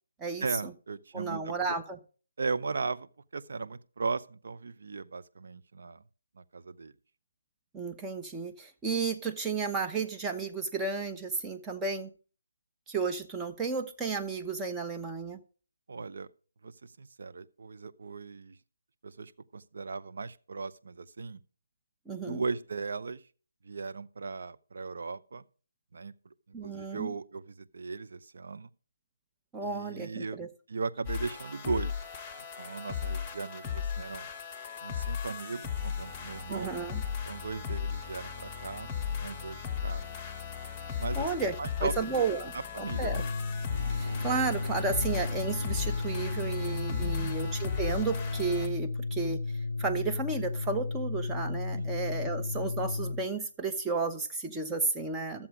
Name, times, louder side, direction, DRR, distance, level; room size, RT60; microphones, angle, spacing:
voice 1, 0.4-1.8 2.4-6.0 6.3-6.9 15.9-16.3 16.6-18.6 19.0-21.4 22.2-23.3 23.6-25.4 25.9-26.3 26.6-28.7 29.6-30.4 30.7-32.0 32.6-34.3 34.8-36.7 37.3-38.9 39.2-40.1 41.0-41.3 41.6-43.3 44.0-44.5 47.0-47.3 51.7-51.9, right 4 dB, 60° right, 0.7 m, -37 dB
voice 2, 1.1-2.0 7.7-12.1 12.9-15.4 22.1-22.4 26.5-27.1 29.5-30.5 36.5-37.0 41.2-41.5 41.8-42.5 42.8-43.2 44.0-49.4 49.8-55.5, right 4 dB, 10° right, 0.9 m, -33 dB
sound 1, 31.1-48.7, left 7 dB, 20° left, 1.2 m, -36 dB
Organ, 43.0-53.3, left 3 dB, 60° left, 0.5 m, -34 dB
sound 2, 43.7-48.1, right 3 dB, 75° right, 1.7 m, -47 dB
12.5 x 7.4 x 4.9 m
figure-of-eight pair, 150°, 0 cm